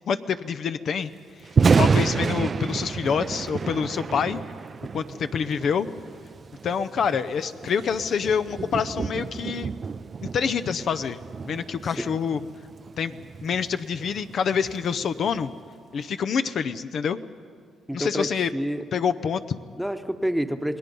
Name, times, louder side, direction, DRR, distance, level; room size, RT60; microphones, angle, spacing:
voice 1, 0.1-1.1 1.4-4.4 4.9-5.9 6.6-9.7 10.3-12.4 13.0-13.2 13.4-15.5 15.9-17.2 17.9-18.5 18.9-19.6, left 6 dB, 60° left, 11 dB, 0.6 m, -26 dB
Thunder, 1.4-15.6, right 5 dB, 40° right, 0.5 m, -29 dB
voice 2, 17.9-18.8 19.7-20.8, equal, ahead, 7 dB, 1.0 m, -28 dB
28.0 x 19.5 x 5.4 m, 2.1 s
cardioid pair, 90°, 0 cm